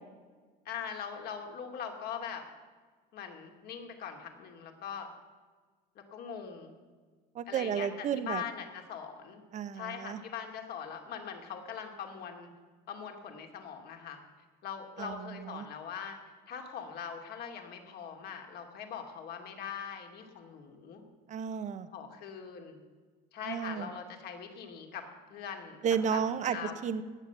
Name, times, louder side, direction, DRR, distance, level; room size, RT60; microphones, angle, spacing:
voice 1, 0.6-2.4 3.1-5.1 6.1-6.7 7.5-9.4 9.7-12.5 12.9-14.2 14.6-16.2 16.5-21.0 21.9-22.8 23.3-25.8 26.1-26.7, left 7 dB, 55° left, 3 dB, 2.6 m, -42 dB
voice 2, 7.3-8.4 9.5-10.2 15.0-15.7 21.3-21.9 23.4-23.9 25.8-26.6 26.8-27.0, right 7 dB, 40° right, 12 dB, 0.9 m, -32 dB
18.5 x 7.6 x 6.8 m, 1.4 s
supercardioid pair, 110°, 19 cm